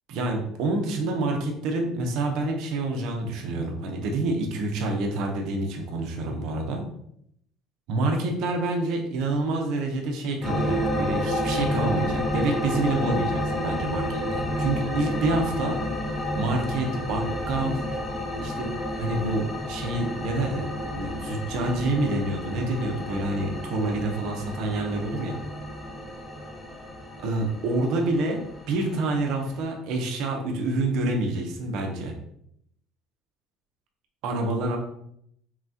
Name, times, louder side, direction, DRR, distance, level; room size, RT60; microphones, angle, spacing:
voice 1, 0.1-6.8 7.9-15.8 16.3-17.8 18.4-18.7 19.0-25.4 27.2-28.4 28.7-32.1 34.2-34.8, right 2 dB, 65° right, 2 dB, 0.9 m, -27 dB
sound 1, 10.4-29.6, equal, 15° left, 0.9 m, -30 dB
5.9 x 2.4 x 2.9 m, 0.72 s
cardioid pair, 120°, 0 cm